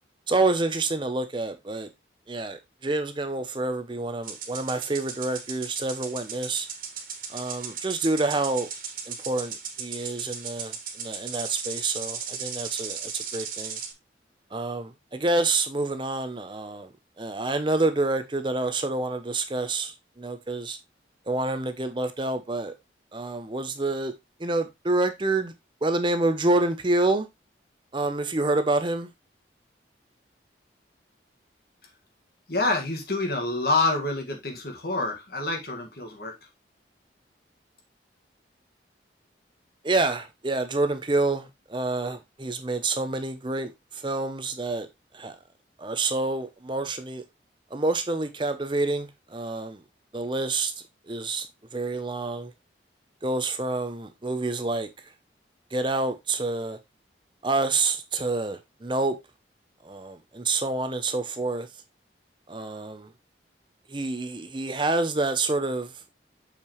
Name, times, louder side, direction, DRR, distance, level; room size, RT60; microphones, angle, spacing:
voice 1, 0.3-1.9 2.3-6.7 7.3-8.7 9.1-13.8 14.5-16.9 17.2-20.8 21.3-22.7 23.1-24.1 24.4-25.5 25.8-27.3 27.9-29.1 39.8-44.9 45.1-45.4 45.8-47.2 47.7-49.8 50.1-50.7 51.1-51.5 51.7-52.5 53.2-54.9 55.7-56.8 57.4-59.2 59.8-61.7 62.5-63.1 63.9-65.9, right 2 dB, 25° right, 0.7 m, -27 dB
sound 1, 4.2-13.9, right 7 dB, 50° right, 1.8 m, -36 dB
voice 2, 32.5-36.3, left 2 dB, 55° left, 1.8 m, -27 dB
6.7 x 5.8 x 3.1 m
head